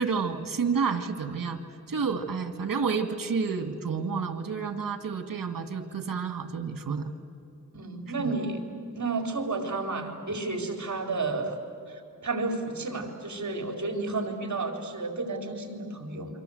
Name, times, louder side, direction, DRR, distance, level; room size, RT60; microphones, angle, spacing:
voice 1, 0.0-1.6 1.9-7.1 8.2-8.3, right 5 dB, 80° right, 8 dB, 2.1 m, -30 dB
voice 2, 7.7-8.6 8.9-11.6 11.9-16.4, right 3 dB, 60° right, 3 dB, 4.0 m, -32 dB
28.5 x 25.0 x 7.9 m, 2.5 s
wide cardioid pair, 80°, 33 cm